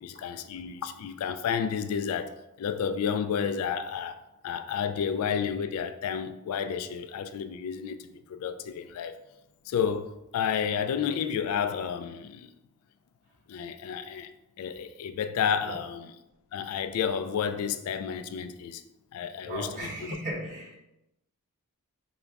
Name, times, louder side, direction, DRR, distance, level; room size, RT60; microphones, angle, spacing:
voice 1, 0.0-2.3 2.6-8.0 8.3-9.2 9.7-12.5 13.5-14.3 14.6-16.1 16.5-18.8 19.1-19.9, left 7 dB, 70° left, 0.3 m, -31 dB
voice 2, 19.4-20.8, right 1 dB, 40° right, 1.4 m, -36 dB
5.0 x 2.2 x 3.4 m
head